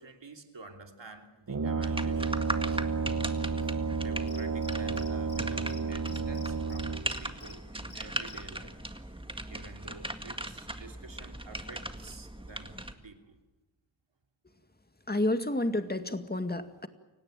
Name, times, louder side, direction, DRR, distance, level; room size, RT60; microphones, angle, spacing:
voice 1, 0.0-2.8 3.6-3.7 4.0-8.8 9.5-13.4, right 3 dB, 65° right, 4 dB, 3.0 m, -50 dB
Brass instrument, 1.5-7.2, right 4 dB, 40° right, 1.2 m, -31 dB
sound 1, 1.8-12.9, right 1 dB, 10° right, 1.8 m, -39 dB
Cricket, 4.3-5.4 5.7-5.8 6.0-7.5 7.9-8.4, left 2 dB, 50° left, 3.9 m, -49 dB
voice 2, 15.1-16.9, left 1 dB, 20° left, 8 dB, 2.1 m, -30 dB
29.5 x 17.5 x 9.1 m, 1.1 s
wide cardioid pair, 60°, 46 cm